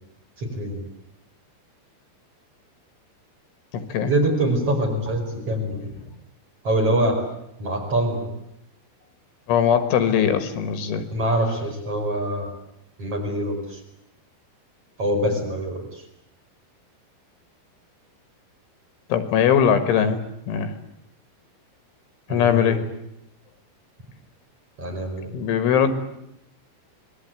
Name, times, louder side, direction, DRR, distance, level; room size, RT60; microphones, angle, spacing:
voice 1, 0.4-0.8 4.1-5.9 6.6-7.2 7.6-8.3 11.1-12.5 13.0-13.8 15.0-16.0 22.3-22.8 24.8-25.3, right 1 dB, 30° right, 1 dB, 5.7 m, -24 dB
voice 2, 3.7-4.1 9.5-11.0 19.1-20.2 20.5-20.7 22.3-22.8 25.3-25.9, left 8 dB, 75° left, 10 dB, 4.0 m, -20 dB
26.5 x 21.0 x 9.2 m, 0.80 s
omnidirectional pair, 5.6 m